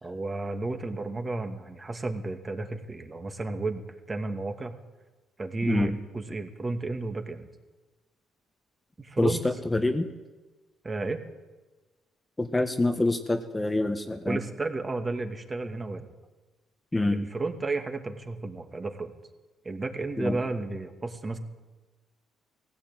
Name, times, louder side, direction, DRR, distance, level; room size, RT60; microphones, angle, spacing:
voice 1, 0.0-4.8 5.4-7.5 9.0-9.6 10.8-11.2 14.3-16.1 17.1-19.1 19.6-21.4, right 3 dB, 25° right, 5 dB, 2.3 m, -32 dB
voice 2, 9.7-10.1 12.4-14.4 16.9-17.3 20.2-20.4, left 2 dB, 15° left, 6 dB, 1.5 m, -26 dB
19.5 x 16.5 x 9.2 m, 1.2 s
cardioid pair, 95°, 0 cm